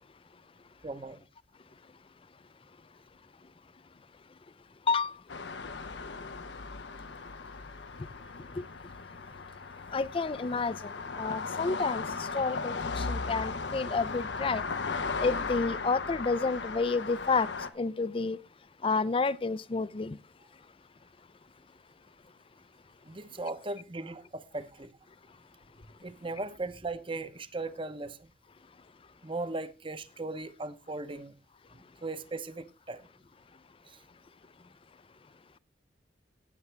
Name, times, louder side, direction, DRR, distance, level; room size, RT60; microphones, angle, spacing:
voice 1, 0.8-1.2 23.0-24.9 26.0-28.3 29.2-31.3 32.0-33.1 33.9-34.0, right 2 dB, 30° right, 0.9 m, -38 dB
sound 1, 5.3-17.7, left 4 dB, 90° left, 1.0 m, -37 dB
voice 2, 9.9-14.6 15.2-17.5 17.8-18.4 18.8-20.2, left 4 dB, 30° left, 0.5 m, -30 dB
17.5 x 7.0 x 3.4 m
head